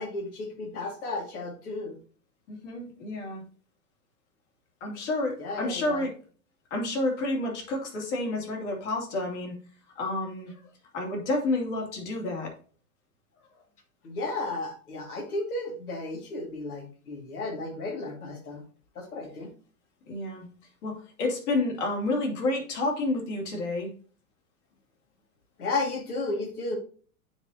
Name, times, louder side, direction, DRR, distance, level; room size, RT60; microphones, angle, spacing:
voice 1, 0.0-2.0 5.4-6.0 14.0-18.6 19.0-19.5 25.6-26.8, left 2 dB, 90° left, 3 dB, 2.2 m, -33 dB
voice 2, 2.5-3.4 4.8-6.1 6.7-9.5 10.0-10.5 10.9-12.5 20.1-20.5 20.8-23.9, left 2 dB, 55° left, 0 dB, 2.9 m, -30 dB
9.2 x 4.2 x 2.8 m, 0.41 s
hypercardioid pair, 135°, 43 cm